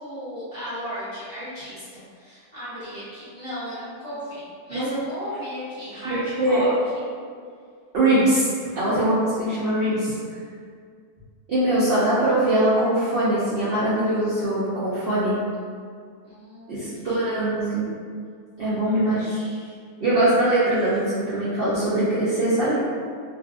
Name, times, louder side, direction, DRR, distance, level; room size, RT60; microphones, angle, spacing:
voice 1, 0.0-7.1 16.2-17.4 18.7-19.8, equal, 20° left, -14 dB, 0.8 m, -36 dB
voice 2, 6.0-6.6 7.9-8.5 8.8-10.1 11.5-15.3 16.7-18.0 18.6-19.3 20.0-22.8, right 1 dB, 70° right, -10 dB, 0.5 m, -22 dB
2.5 x 2.4 x 2.3 m, 2.1 s
omnidirectional pair, 1.6 m